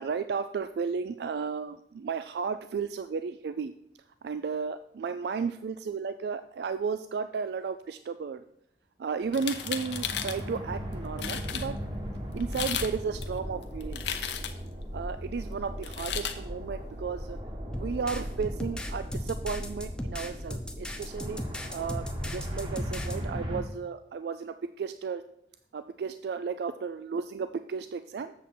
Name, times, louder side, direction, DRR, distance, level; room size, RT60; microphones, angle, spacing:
voice 1, 0.0-3.7 4.2-8.4 9.0-11.8 12.3-14.1 14.9-17.4 17.8-21.4 21.7-25.2 25.7-28.3, right 5 dB, 65° right, 11 dB, 0.3 m, -34 dB
sound 1, 9.3-10.4 10.9-11.0 11.2-11.7 12.4-12.9 13.2-14.7 15.8-16.4, left 9 dB, 85° left, 0.7 m, -34 dB
sound 2, 9.3-23.6, equal, 30° right, 1.2 m, -37 dB
sound 3, 17.7-23.2, left 1 dB, 5° left, 0.7 m, -38 dB
7.4 x 7.2 x 4.3 m, 0.74 s
head